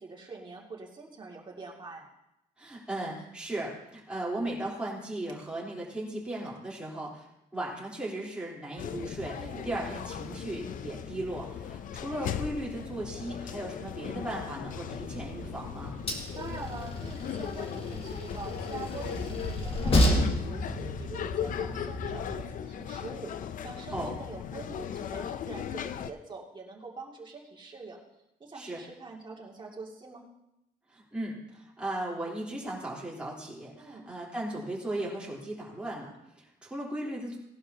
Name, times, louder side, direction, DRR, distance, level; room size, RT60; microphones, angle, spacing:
voice 1, 0.0-2.1 9.3-9.7 16.3-28.0 28.4-30.3 33.8-34.0, right 3 dB, 30° right, -1 dB, 2.5 m, -44 dB
voice 2, 2.6-7.3 7.5-9.4 9.6-16.0 23.9-24.2 28.5-28.8 30.9-37.4, right 1 dB, 5° right, -6 dB, 3.9 m, -37 dB
sound 1, 8.8-26.1, left 9 dB, 60° left, 0.6 m, -38 dB
Train, 14.7-22.4, left 1 dB, 40° left, 1.9 m, -31 dB
18.5 x 11.5 x 2.9 m, 0.87 s
cardioid pair, 130°, 16 cm